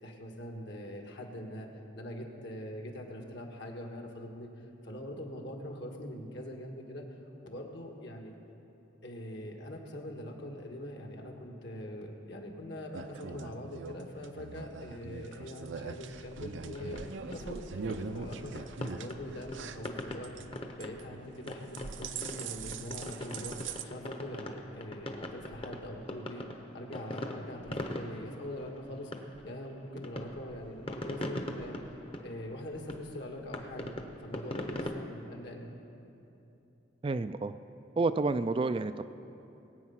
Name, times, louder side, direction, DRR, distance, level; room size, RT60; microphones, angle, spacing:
voice 1, 0.0-1.7 1.9-7.0 7.4-8.3 9.0-17.0 17.3-20.3 20.8-26.5 26.7-29.1 29.4-31.7 32.2-33.9 34.2-35.7, left 1 dB, 65° left, 1 dB, 1.7 m, -43 dB
sound 1, 12.9-20.4 20.8-21.2 21.5-23.8, right 5 dB, 75° right, 0.6 m, -41 dB
sound 2, 16.7-34.9, left 1 dB, 30° left, 0.9 m, -42 dB
voice 2, 37.0-37.5 38.0-39.0, right 3 dB, 30° right, 11 dB, 0.3 m, -29 dB
20.5 x 8.6 x 5.8 m, 2.8 s
head